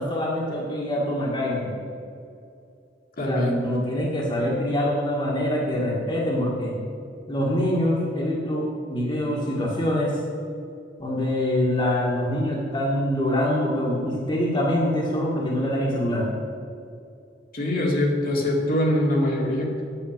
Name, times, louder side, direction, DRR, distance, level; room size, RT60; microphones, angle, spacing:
voice 1, 0.0-1.7 3.2-6.7 7.3-10.2 11.0-16.3, left 1 dB, 25° left, -3 dB, 1.7 m, -25 dB
voice 2, 3.2-3.5 17.5-19.8, left 1 dB, 50° left, -1 dB, 2.1 m, -23 dB
9.1 x 8.9 x 6.5 m, 2.5 s
head